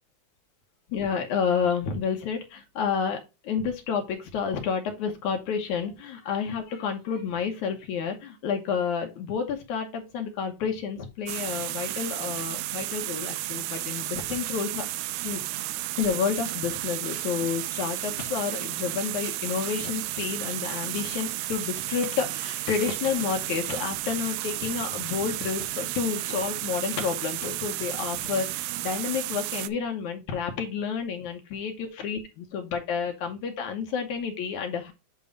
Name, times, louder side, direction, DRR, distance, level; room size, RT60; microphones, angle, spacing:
voice 1, 0.9-15.4 16.0-32.2 32.5-34.9, left 6 dB, 70° left, 4 dB, 1.8 m, -30 dB
sound 1, 11.3-29.7, right 16 dB, 90° right, 2.7 m, -33 dB
9.1 x 3.0 x 5.1 m, 0.26 s
omnidirectional pair, 4.7 m